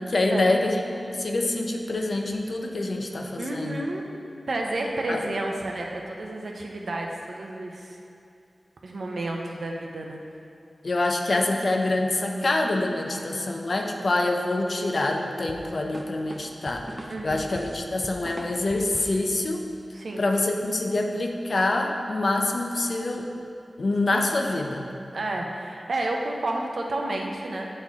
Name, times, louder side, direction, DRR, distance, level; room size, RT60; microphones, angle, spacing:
voice 1, 0.0-3.8 5.1-5.2 10.8-16.9 17.2-19.7 20.2-23.3 23.8-24.9, left 2 dB, 55° left, 2 dB, 0.5 m, -26 dB
voice 2, 3.4-4.0 4.5-8.0 8.8-10.2 13.1-13.5 17.1-17.4 19.9-20.3 24.1-24.2 25.1-27.7, right 2 dB, 70° right, 1 dB, 0.6 m, -31 dB
sound 1, 15.5-19.3, right 1 dB, 30° right, 0.5 m, -40 dB
7.8 x 4.2 x 3.5 m, 2.6 s
wide cardioid pair, 85°, 0 cm